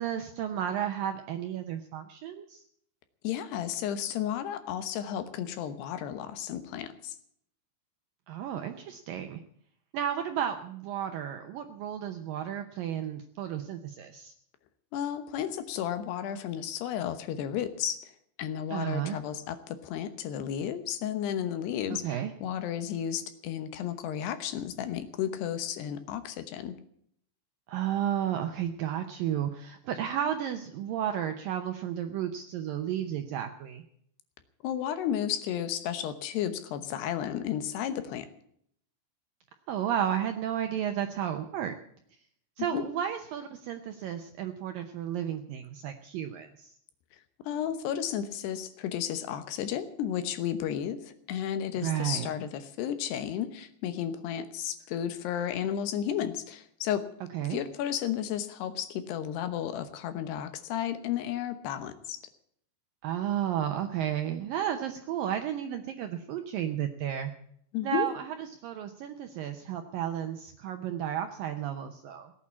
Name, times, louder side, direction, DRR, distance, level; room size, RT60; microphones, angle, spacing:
voice 1, 0.0-2.6 8.3-9.4 9.9-14.3 18.7-19.2 21.9-22.3 27.7-33.8 39.7-41.7 42.6-46.7 51.8-52.3 57.3-57.6 63.0-67.3 67.8-72.3, right 10 dB, 80° right, 7 dB, 2.0 m, -33 dB
voice 2, 3.2-7.2 14.9-18.1 18.4-26.7 34.6-38.3 42.6-42.8 47.4-57.0 57.5-62.2 67.7-68.1, left 10 dB, 75° left, 11 dB, 3.0 m, -33 dB
17.5 x 8.8 x 8.5 m, 0.67 s
omnidirectional pair, 5.1 m